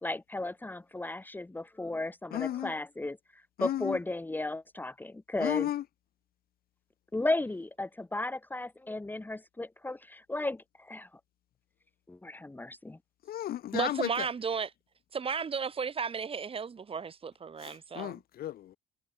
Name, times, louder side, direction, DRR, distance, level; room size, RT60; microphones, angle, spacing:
voice 1, 0.0-3.2 3.6-5.7 7.1-11.1 12.1-13.0, left 2 dB, 10° left, 2.0 m, -35 dB
voice 2, 2.3-2.7 3.6-4.0 5.4-5.8 13.3-14.3 17.6-18.8, left 12 dB, 60° left, 2.2 m, -34 dB
voice 3, 13.7-14.7 15.1-18.2, right 6 dB, 35° right, 4.7 m, -34 dB
cardioid pair, 110°, 17 cm